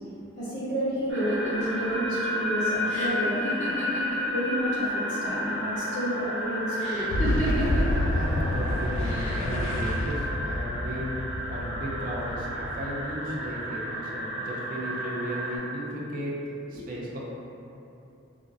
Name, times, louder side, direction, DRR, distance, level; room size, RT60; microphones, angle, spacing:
voice 1, 0.4-3.3 4.3-7.0 16.7-16.8, equal, 70° left, -12 dB, 1.4 m, -30 dB
sound 1, 1.1-4.7 5.0-5.7 6.8-8.0 9.0-9.6, right 1 dB, 35° left, 0.7 m, -33 dB
sound 2, 1.1-15.6, equal, 70° right, 0.7 m, -32 dB
Boom, 7.1-13.6, left 1 dB, 90° left, 0.3 m, -29 dB
voice 2, 8.1-11.2 11.5-16.4 16.7-17.2, equal, 45° right, -4 dB, 0.4 m, -35 dB
3.5 x 2.1 x 2.5 m, 2.8 s
head